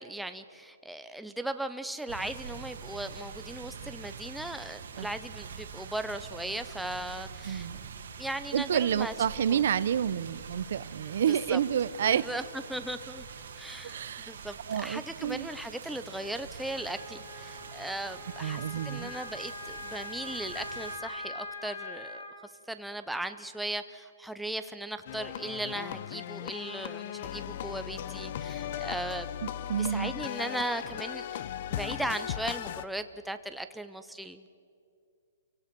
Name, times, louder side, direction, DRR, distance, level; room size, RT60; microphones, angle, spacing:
voice 1, 0.0-7.7 8.2-9.6 11.3-11.6 12.0-13.3 13.5-14.0 14.3-29.3 29.8-31.4 31.7-34.5, right 1 dB, ahead, 8 dB, 0.5 m, -37 dB
sound 1, 2.1-21.0, right 6 dB, 70° right, 2.3 m, -45 dB
voice 2, 7.5-7.9 8.5-12.2 13.8-14.3 14.7-15.5 18.4-19.1 29.7-30.1, right 9 dB, 55° right, 17 dB, 0.6 m, -29 dB
Wind instrument woodwind instrument, 16.6-22.3, left 3 dB, 80° left, 7.8 m, -42 dB
sound 2, 25.1-32.9, left 10 dB, 45° left, 0.7 m, -37 dB
27.5 x 17.5 x 6.0 m, 2.4 s
hypercardioid pair, 165°, 0 cm